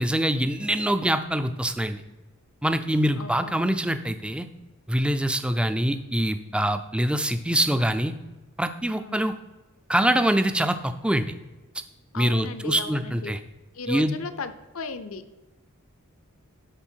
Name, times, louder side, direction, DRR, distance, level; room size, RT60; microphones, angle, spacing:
voice 1, 0.0-2.0 2.6-4.5 4.9-8.1 8.6-9.3 9.9-11.3 12.2-13.4 13.9-14.2, right 1 dB, 5° right, 10 dB, 0.4 m, -24 dB
voice 2, 3.1-3.6 9.0-9.2 12.1-13.3 13.7-15.5, left 3 dB, 70° left, 11 dB, 0.7 m, -36 dB
13.0 x 4.3 x 4.5 m, 1.1 s
head